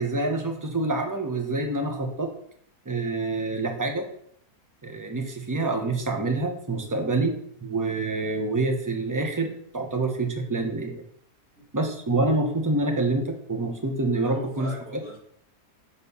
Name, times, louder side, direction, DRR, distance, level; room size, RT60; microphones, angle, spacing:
voice 1, 0.0-2.3 2.9-4.1 4.8-7.3 7.6-11.0 11.7-14.7, right 2 dB, 15° right, 4 dB, 0.8 m, -26 dB
voice 2, 14.0-15.2, equal, 55° right, -5 dB, 2.4 m, -42 dB
5.6 x 4.3 x 5.4 m, 0.67 s
omnidirectional pair, 1.5 m